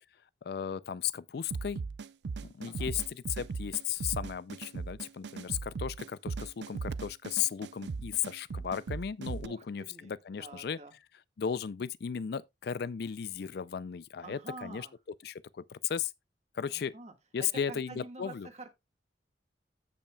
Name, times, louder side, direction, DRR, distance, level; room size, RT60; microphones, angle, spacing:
voice 1, 0.4-1.8 2.4-10.8 11.4-14.9 15.2-16.1 16.5-16.9 17.3-18.5, left 8 dB, 60° left, 0.4 m, -35 dB
sound 1, 1.5-9.5, right 4 dB, 75° right, 0.4 m, -38 dB
voice 2, 9.4-10.1 10.4-10.9 14.2-14.9 16.7-18.8, right 2 dB, 40° right, 1.6 m, -47 dB
15.5 x 5.5 x 2.3 m
head